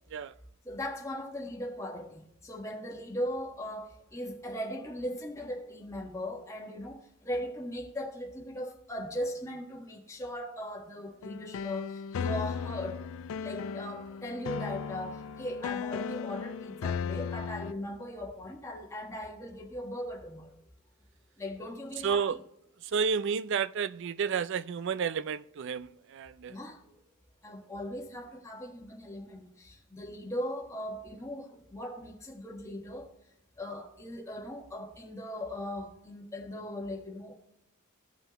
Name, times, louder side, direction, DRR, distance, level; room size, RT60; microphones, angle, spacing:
voice 1, 0.6-13.0 13.4-20.5 21.4-22.4 26.5-27.0 27.4-33.1 33.6-37.3, left 1 dB, 15° left, 1.4 m, -39 dB
sound 1, 11.2-17.7, left 6 dB, 65° left, 0.3 m, -36 dB
voice 2, 22.0-22.4 22.9-26.6, right 6 dB, 55° right, 0.4 m, -31 dB
16.5 x 5.6 x 3.0 m
head